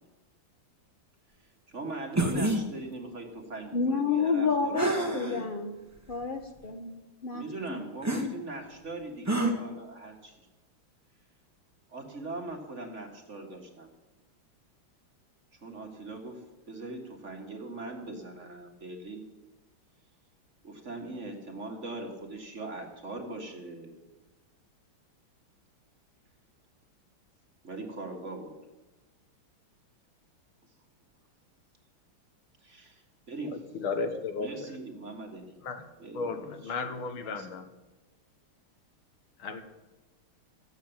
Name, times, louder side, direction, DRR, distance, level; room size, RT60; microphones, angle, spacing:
voice 1, 1.7-5.5 7.3-10.4 11.9-13.9 15.6-16.4 16.7-19.2 20.6-23.9 27.6-28.5 32.6-33.6 34.4-35.5 36.0-37.5, right 2 dB, 35° right, 2 dB, 1.9 m, -41 dB
sound 1, 2.1-2.6 4.7-5.4 6.1-6.2 8.0-8.3 9.3-9.5, right 1 dB, 10° right, 1.0 m, -27 dB
voice 2, 3.7-5.7 6.1-7.4 7.7-7.8, left 4 dB, 50° left, 4 dB, 0.6 m, -29 dB
voice 3, 33.8-34.5 35.6-35.8 36.1-37.6 39.4-39.6, left 4 dB, 70° left, 8 dB, 2.0 m, -34 dB
14.0 x 8.1 x 8.7 m, 1.1 s
omnidirectional pair, 2.4 m